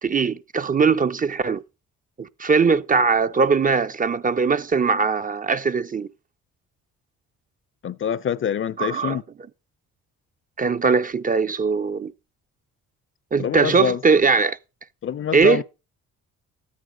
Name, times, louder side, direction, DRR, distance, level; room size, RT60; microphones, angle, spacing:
voice 1, 0.0-1.6 2.2-6.1 8.8-9.2 10.6-12.1 13.3-14.6 15.3-15.6, right 5 dB, 30° right, 0.5 m, -20 dB
voice 2, 7.8-9.2 13.4-14.0 15.0-15.6, left 8 dB, 40° left, 0.6 m, -25 dB
13.0 x 9.4 x 3.8 m
cardioid pair, 90°, 30 cm